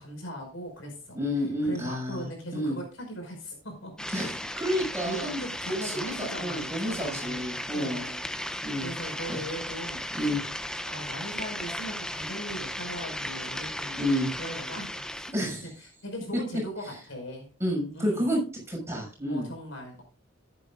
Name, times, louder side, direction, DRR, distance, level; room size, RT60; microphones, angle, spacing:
voice 1, 0.0-1.2 1.6-4.1 5.0-8.2 8.8-10.0 10.8-14.1 14.4-15.2 15.6-17.5 17.9-18.3 19.3-20.0, equal, 70° left, 2 dB, 5.3 m, -39 dB
voice 2, 1.1-2.8 4.1-5.3 5.7-6.0 6.4-8.0 8.6-9.4 10.1-10.4 14.0-14.3 15.3-15.7 16.3-16.4 16.8-16.9 17.6-19.5, equal, 15° right, -2 dB, 6.2 m, -30 dB
sound 1, 4.0-15.3, left 1 dB, 5° left, 0.6 m, -36 dB
14.5 x 10.0 x 2.5 m, 0.34 s
head